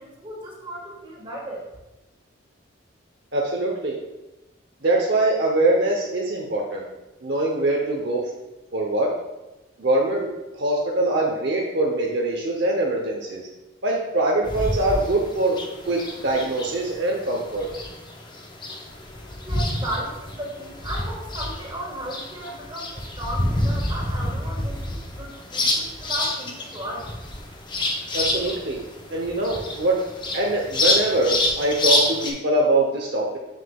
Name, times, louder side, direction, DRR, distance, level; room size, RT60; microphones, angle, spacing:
voice 1, 0.0-1.7 19.4-27.1, equal, 25° right, -3 dB, 1.6 m, -35 dB
voice 2, 3.3-4.0 4.8-6.9 7.2-8.2 8.7-9.1 9.8-10.3 10.5-13.4 13.8-15.6 15.9-17.7 28.1-28.8 29.1-30.0 30.3-33.4, right 2 dB, 55° right, -1 dB, 0.8 m, -23 dB
sound 1, 14.4-32.3, left 1 dB, 25° left, 0.7 m, -28 dB
7.3 x 6.4 x 2.3 m, 1.0 s
head